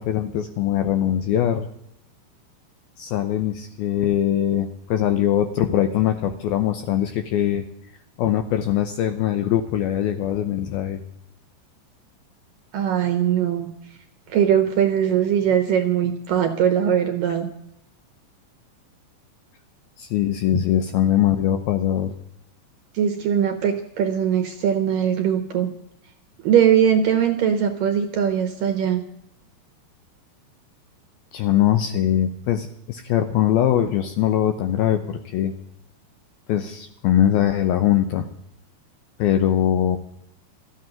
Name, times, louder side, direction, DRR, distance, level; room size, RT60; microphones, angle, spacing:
voice 1, 0.0-1.7 3.0-7.6 8.2-11.0 20.0-22.1 31.3-35.5 36.5-38.3 39.2-40.0, left 11 dB, 80° left, 8 dB, 2.2 m, -22 dB
voice 2, 12.7-13.7 14.3-17.5 22.9-25.7 26.4-29.1, right 9 dB, 70° right, 6 dB, 2.1 m, -20 dB
14.0 x 9.4 x 9.0 m, 0.77 s
omnidirectional pair, 5.3 m